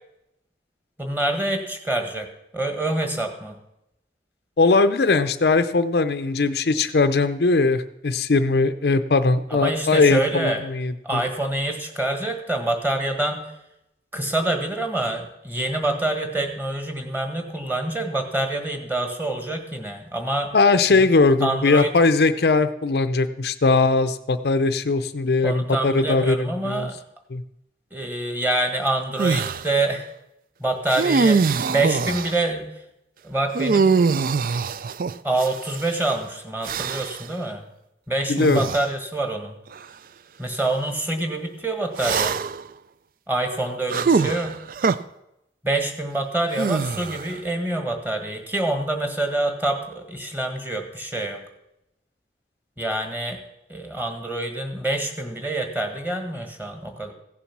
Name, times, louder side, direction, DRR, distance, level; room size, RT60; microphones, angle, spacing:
voice 1, 1.0-2.3 2.5-3.5 9.5-10.6 11.0-13.5 14.1-20.5 20.9-21.0 21.4-21.9 25.4-27.0 27.9-30.1 30.6-32.8 33.2-34.0 35.2-37.6 38.1-39.5 40.4-42.4 43.3-44.6 45.6-51.4 52.8-53.4 53.7-57.1, right 2 dB, 10° right, 4 dB, 1.5 m, -26 dB
voice 2, 4.6-11.2 20.5-26.9 27.3-27.4 38.3-38.7, left 3 dB, 65° left, 11 dB, 0.5 m, -20 dB
sound 1, 29.2-29.7 30.9-32.4 33.5-35.9 36.6-37.3 38.4-38.9 39.7-39.8 42.0-42.7 43.9-45.0 46.5-47.4, right 4 dB, 50° right, 0.4 m, -23 dB
15.5 x 7.1 x 6.0 m, 0.85 s
head